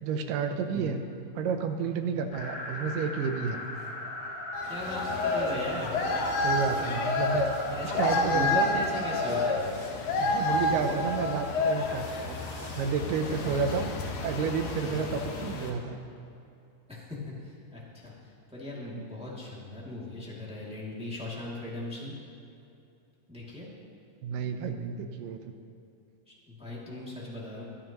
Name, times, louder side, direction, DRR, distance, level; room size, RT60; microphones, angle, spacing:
voice 1, 0.0-1.0 1.4-3.6 6.4-7.5 8.0-8.7 9.9-12.4 12.8-13.9 14.2-16.0 18.9-19.1 24.2-25.4, right 5 dB, 80° right, 7 dB, 2.3 m, -31 dB
sound 1, 2.3-9.6, left 1 dB, 50° left, 3.7 m, -38 dB
sound 2, 4.5-15.7, left 2 dB, 80° left, 2.9 m, -30 dB
voice 2, 4.7-5.9 7.7-9.8 13.4-13.6 14.9-15.1 16.9-18.1 18.5-22.1 23.3-23.7 26.5-27.6, left 2 dB, ahead, -6 dB, 1.6 m, -38 dB
sound 3, 5.0-15.1, equal, 30° right, 3.8 m, -48 dB
24.0 x 9.1 x 3.0 m, 2.6 s
omnidirectional pair, 3.9 m